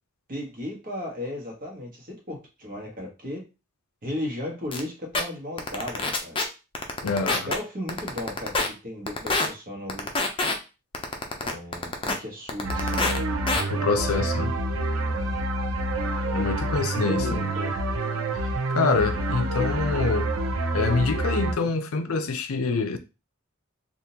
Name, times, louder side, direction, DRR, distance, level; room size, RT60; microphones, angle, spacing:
voice 1, 0.3-3.4 4.0-6.4 7.0-10.1 11.4-13.2 15.0-15.3 16.9-17.7 21.6-21.7, left 1 dB, 45° right, 1.3 m, -35 dB
sound 1, 4.7-4.8 5.1-5.2 5.6-6.4 6.7-7.5 7.9-8.7 9.1-9.5 9.9-10.5 10.9-12.1 12.5-13.2 13.5-13.6, left 3 dB, 25° left, 0.6 m, -25 dB
voice 2, 7.0-7.5 13.7-14.5 16.3-17.5 18.3-18.4 18.7-20.3 20.7-23.0, left 4 dB, 75° left, 0.5 m, -26 dB
sound 2, 12.6-21.5, right 2 dB, 90° right, 0.6 m, -27 dB
3.7 x 2.5 x 2.8 m
head